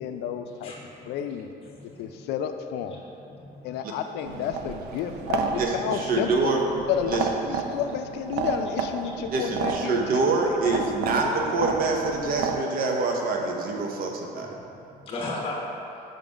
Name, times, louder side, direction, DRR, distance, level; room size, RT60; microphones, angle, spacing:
voice 1, 0.0-0.7 1.1-1.5 2.0-3.0 3.6-6.5 6.9-10.9 11.5-11.6, left 8 dB, 80° left, 7 dB, 0.4 m, -31 dB
voice 2, 0.6-1.3 1.6-2.3 2.9-3.9 6.1-6.2 7.5-7.8 9.0-9.3 13.8-15.6, left 2 dB, 35° left, -3 dB, 0.9 m, -39 dB
sound 1, 4.2-12.6, right 5 dB, 75° right, 0.4 m, -32 dB
voice 3, 5.6-6.7 7.1-7.2 9.3-14.5, right 3 dB, 60° right, 1 dB, 0.8 m, -25 dB
5.6 x 3.6 x 5.1 m, 2.8 s
cardioid pair, 110°, 17 cm